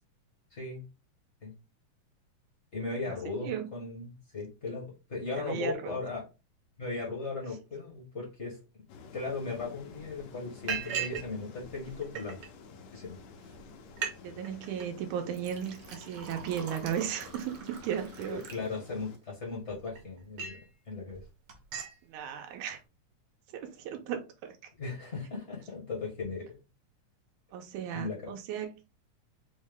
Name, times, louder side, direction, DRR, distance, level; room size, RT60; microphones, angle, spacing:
voice 1, 0.5-0.8 1.4-1.5 2.7-6.2 6.8-8.8 9.1-12.4 12.9-13.2 18.2-20.6 20.9-21.2 24.8-26.6 27.9-28.3, left 3 dB, 55° left, 0.7 m, -37 dB
voice 2, 5.4-6.0 14.2-18.4 22.1-22.8 23.5-24.5 27.5-28.7, right 8 dB, 90° right, 2.1 m, -35 dB
sound 1, 8.9-19.2, left 4 dB, 80° left, 2.1 m, -51 dB
Liquid, 9.5-9.6 9.9-10.2 10.7-11.3 11.6-12.5 13.1-13.2 13.5-13.6 13.9-14.2 14.4-14.9 15.3-19.2 19.7-20.7 21.1-21.2 21.5-22.0, right 7 dB, 70° right, 1.4 m, -39 dB
5.3 x 2.2 x 3.4 m
omnidirectional pair, 3.4 m